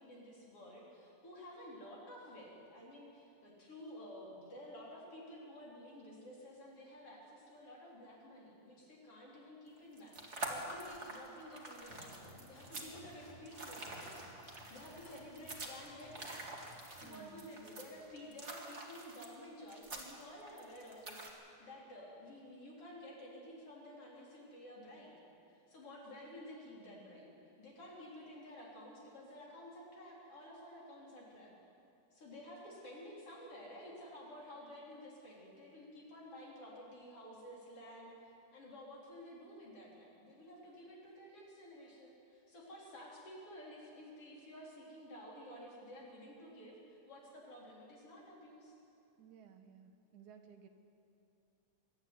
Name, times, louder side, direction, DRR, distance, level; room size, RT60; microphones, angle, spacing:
voice 1, 0.0-16.5 16.9-25.1 25.5-27.3 27.6-31.5 32.1-48.8, equal, 50° left, -4 dB, 5.0 m, -52 dB
sound 1, 9.8-21.3, right 2 dB, 25° right, 2.1 m, -47 dB
Domestic sounds home sounds, 11.5-18.4, left 1 dB, 75° left, 8.1 m, -59 dB
voice 2, 17.0-17.5 49.2-50.7, right 7 dB, 80° right, 5 dB, 2.7 m, -57 dB
23.0 x 12.5 x 9.6 m, 2.7 s
omnidirectional pair, 3.4 m